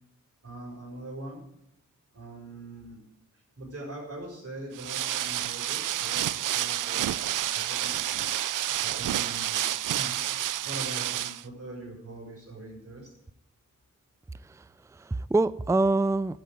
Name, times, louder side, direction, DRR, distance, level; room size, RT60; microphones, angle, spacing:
voice 1, 0.4-1.4 2.1-3.0 3.3-8.3 8.8-10.2 10.6-13.1, right 2 dB, 50° right, -2 dB, 6.2 m, -42 dB
sound 1, 4.7-11.4, right 12 dB, 80° right, 0.5 m, -29 dB
voice 2, 14.4-16.4, right 2 dB, 10° right, 17 dB, 0.5 m, -26 dB
10.5 x 9.3 x 7.8 m, 0.78 s
cardioid pair, 45°, 31 cm